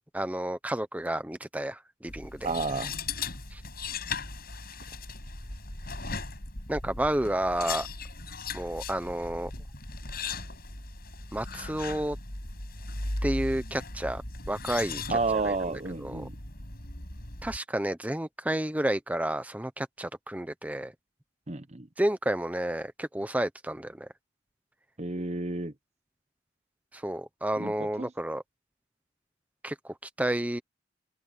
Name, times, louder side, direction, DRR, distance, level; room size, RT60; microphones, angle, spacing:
voice 1, 0.0-2.5 3.5-3.6 6.7-7.9 8.5-9.5 11.3-12.2 13.2-14.2 14.5-15.2 15.4-15.6 16.0-16.3 17.4-20.9 22.0-24.1 26.9-28.4 29.6-30.6, right 1 dB, 10° right, 0.8 m, -31 dB
sound 1, 2.1-17.6, left 3 dB, 50° left, 7.7 m, -38 dB
voice 2, 2.4-3.0 15.1-16.4 21.5-21.9 25.0-25.7 27.6-28.1, right 3 dB, 35° right, 1.0 m, -31 dB
open air
head